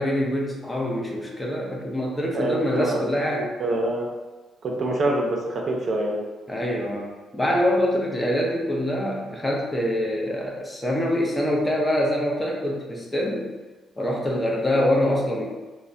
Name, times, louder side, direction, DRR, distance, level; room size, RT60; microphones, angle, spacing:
voice 1, 0.0-3.5 6.5-13.5 14.0-15.5, left 1 dB, 15° left, -1 dB, 0.5 m, -25 dB
voice 2, 2.3-3.0 3.3-4.1 4.6-6.2, right 1 dB, 50° right, 0 dB, 0.5 m, -25 dB
3.2 x 2.0 x 2.5 m, 1.2 s
cardioid pair, 90°, 0 cm